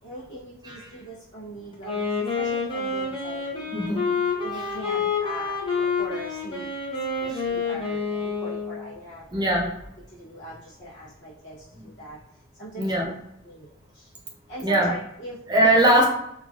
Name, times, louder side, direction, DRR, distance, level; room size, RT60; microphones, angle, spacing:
voice 1, 0.0-3.7 4.4-6.7 7.2-9.3 10.2-12.2 12.6-13.0 13.4-14.1 14.5-15.4, equal, 55° left, -9 dB, 0.8 m, -40 dB
Wind instrument woodwind instrument, 1.7-8.9, left 4 dB, 25° left, 0.7 m, -28 dB
voice 2, 3.7-4.0 4.5-4.7 9.3-9.7 11.8-11.9 12.8-13.1 14.6-14.9 15.5-16.0, right 1 dB, 20° right, -1 dB, 0.6 m, -21 dB
3.1 x 2.4 x 2.4 m, 0.79 s
head